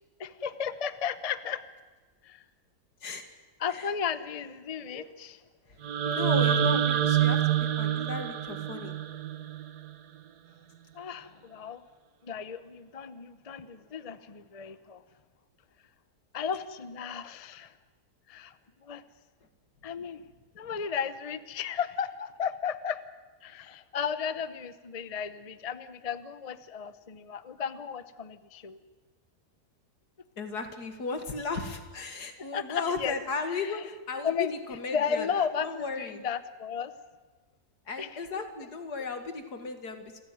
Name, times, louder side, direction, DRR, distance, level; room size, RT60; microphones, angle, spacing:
voice 1, 0.2-1.7 2.2-2.4 3.6-5.4 10.9-11.9 12.2-15.0 16.3-17.7 18.3-18.6 18.8-19.0 19.8-20.2 20.6-23.0 23.4-28.8 32.4-33.2 33.5-33.8 34.2-34.5 34.9-36.9 38.0-38.5, left 7 dB, 30° left, 13 dB, 0.7 m, -34 dB
sound 1, 5.8-9.9, right 9 dB, 75° right, 1.7 m, -26 dB
voice 2, 6.0-8.9 30.4-36.2 37.9-40.2, left 4 dB, 80° left, 7 dB, 2.6 m, -36 dB
27.5 x 15.5 x 9.3 m, 1.3 s
omnidirectional pair, 1.7 m